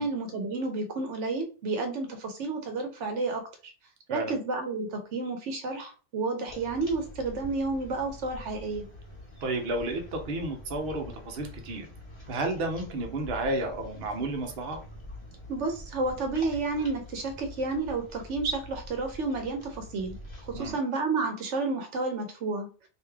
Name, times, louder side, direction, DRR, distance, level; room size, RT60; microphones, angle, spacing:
voice 1, 0.0-3.5 4.1-8.8 15.5-20.2 20.4-22.7, right 3 dB, 80° right, 5 dB, 1.1 m, -31 dB
sound 1, 6.5-20.7, left 1 dB, 25° left, 1.2 m, -45 dB
voice 2, 9.4-11.9 12.3-14.8 20.5-20.8, right 2 dB, 55° right, 4 dB, 0.9 m, -32 dB
3.1 x 2.7 x 3.4 m, 0.35 s
omnidirectional pair, 1.2 m